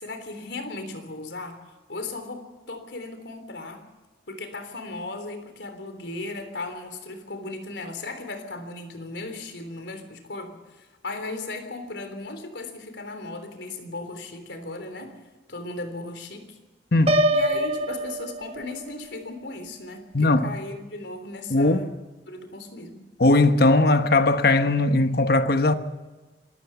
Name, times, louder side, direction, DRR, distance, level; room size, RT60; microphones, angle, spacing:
voice 1, 0.0-1.6 1.9-3.8 4.3-15.1 15.5-16.6 17.3-21.9 22.3-23.0, left 2 dB, 80° left, 3.5 m, -36 dB
voice 2, 16.9-17.3 20.1-20.6 21.5-21.9 23.2-25.7, left 2 dB, 60° left, 1.1 m, -19 dB
Piano, 17.1-19.0, right 1 dB, 35° right, 1.1 m, -24 dB
26.0 x 14.5 x 7.0 m
head